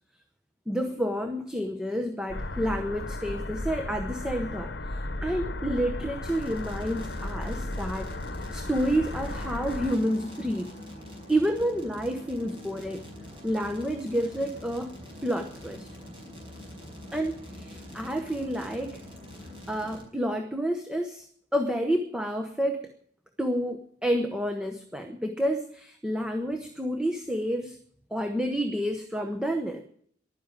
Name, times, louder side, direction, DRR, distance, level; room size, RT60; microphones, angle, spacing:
voice 1, 0.7-8.1 8.5-10.8 11.3-13.0 13.4-14.9 15.2-15.9 17.1-19.0 19.7-21.3 21.5-22.9 23.4-27.8 28.1-29.8, equal, 5° right, 5 dB, 0.8 m, -29 dB
sound 1, 2.3-10.0, left 2 dB, 70° left, 1.0 m, -35 dB
sound 2, 6.3-20.0, left 1 dB, 30° right, 4.7 m, -44 dB
sound 3, 9.2-12.7, left 2 dB, 40° left, 2.3 m, -50 dB
12.0 x 10.0 x 9.0 m, 0.62 s
head